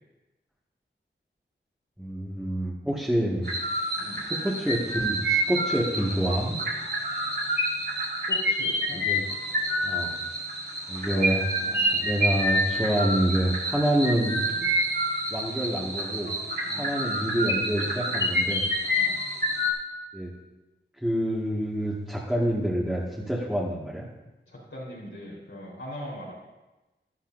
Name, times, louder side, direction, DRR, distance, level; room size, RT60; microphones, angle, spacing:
voice 1, 2.0-3.5 4.3-6.6 8.9-9.2 9.8-10.1 10.9-11.4 11.9-14.4 15.3-16.3 16.8-18.7 20.1-20.3 21.0-24.1, equal, 5° right, -6 dB, 1.9 m, -27 dB
sound 1, 3.4-19.7, equal, 55° right, 2.2 m, -28 dB
voice 2, 4.0-4.3 8.3-9.0 11.1-11.3 11.6-12.1 16.6-17.0 19.0-19.2 24.5-26.3, left 1 dB, 80° left, -5 dB, 4.2 m, -40 dB
12.0 x 12.0 x 2.7 m, 1.1 s
wide cardioid pair, 65°, 20 cm